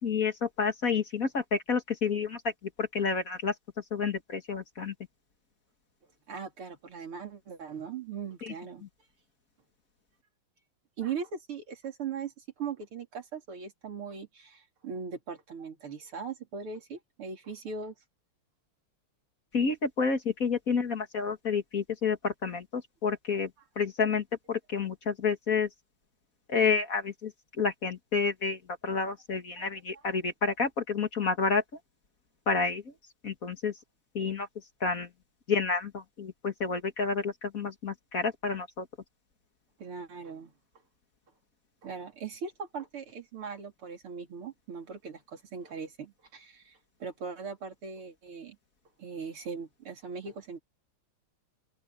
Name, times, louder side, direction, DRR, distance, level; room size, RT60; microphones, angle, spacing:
voice 1, 0.0-2.5 2.8-3.5 3.9-4.9 8.4-8.5 19.5-23.5 23.8-25.7 26.5-27.3 27.6-31.6 32.5-32.8 33.2-33.7 34.1-34.5 34.8-35.1 35.5-38.9, left 5 dB, 40° left, 2.2 m, -29 dB
voice 2, 6.3-8.9 11.0-17.9 29.6-29.7 39.8-40.5 41.8-48.6 49.0-50.6, right 6 dB, 80° right, 3.9 m, -39 dB
open air
omnidirectional pair, 2.4 m